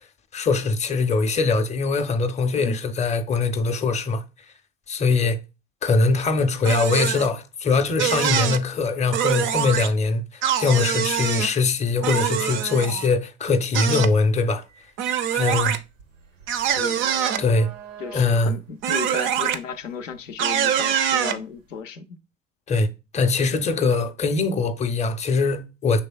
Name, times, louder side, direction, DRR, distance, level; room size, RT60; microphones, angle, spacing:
voice 1, 0.3-4.2 4.9-5.4 5.8-14.6 15.3-15.8 17.4-17.7 18.1-18.5 22.7-22.9 23.1-26.0, left 4 dB, 20° left, 0.5 m, -22 dB
sound 1, 6.6-7.3 8.0-8.6 9.1-9.9 10.4-11.5 12.0-13.1 13.7-14.1 15.0-15.8 16.5-17.4 18.8-19.6 20.4-21.4, right 9 dB, 35° right, 0.4 m, -24 dB
sound 2, 13.6-13.8 14.2-21.2, right 6 dB, 85° right, 0.7 m, -44 dB
voice 2, 16.8-17.1 18.0-22.1, left 6 dB, 85° left, 0.5 m, -34 dB
5.9 x 3.3 x 2.2 m
figure-of-eight pair, 70°, 37 cm